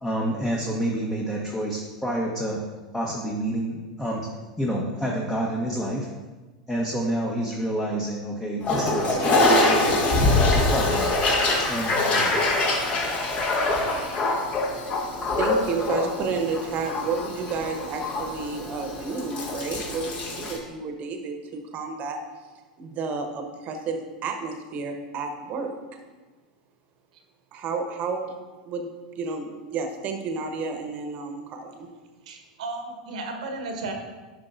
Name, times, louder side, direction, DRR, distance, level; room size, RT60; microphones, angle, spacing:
voice 1, 0.0-2.6 2.9-4.3 4.6-6.1 6.7-9.9 10.5-11.1 11.6-12.4, right 1 dB, 10° left, -2 dB, 1.1 m, -28 dB
Toilet flush, 8.6-20.6, left 2 dB, 35° left, 1.5 m, -24 dB
voice 2, 15.4-22.2 22.8-25.8 27.5-28.3 28.6-28.9 29.1-31.9, right 4 dB, 40° right, 5 dB, 1.2 m, -31 dB
voice 3, 32.3-33.9, right 3 dB, 70° right, 4 dB, 1.2 m, -34 dB
11.0 x 5.7 x 2.6 m, 1.3 s
hypercardioid pair, 95°, 4 cm